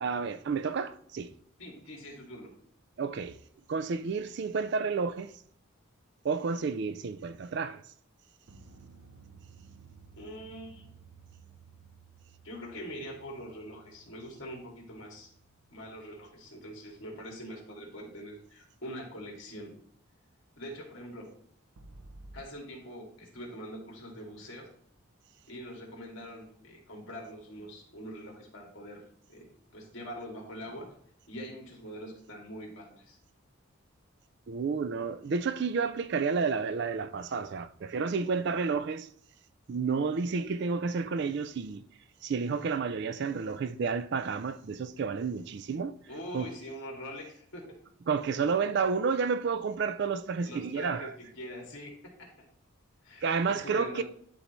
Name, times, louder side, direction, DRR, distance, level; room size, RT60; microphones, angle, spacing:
voice 1, 0.0-1.3 3.0-3.4 3.7-5.3 6.2-7.8 34.5-39.1 39.7-41.8 42.2-45.9 46.3-46.5 48.1-51.1 53.2-54.0, right 5 dB, 50° right, 0.3 m, -30 dB
voice 2, 1.6-2.5 10.1-10.9 12.4-15.3 15.7-19.7 20.6-21.3 22.3-24.7 25.5-29.0 29.3-31.0 31.3-33.2 46.1-47.6 50.4-51.9 52.2-52.3 53.0-54.0, equal, 60° left, 2.2 m, -43 dB
sound 1, 8.5-16.8 21.8-22.4, right 4 dB, 80° right, 0.7 m, -55 dB
11.5 x 3.9 x 3.1 m
head